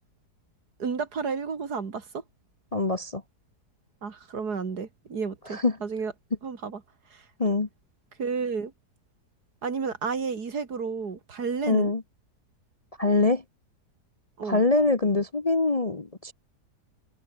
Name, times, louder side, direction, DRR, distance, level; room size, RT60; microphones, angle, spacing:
voice 1, 0.8-2.2 4.0-6.1 6.4-6.8 7.1-7.2 8.2-8.7 9.6-11.9 14.4-14.6, right 5 dB, 70° right, 2.8 m, -31 dB
voice 2, 2.7-3.2 5.5-5.7 7.4-7.7 11.6-12.0 13.0-13.4 14.4-16.3, left 3 dB, 25° left, 1.0 m, -24 dB
omnidirectional pair, 1.8 m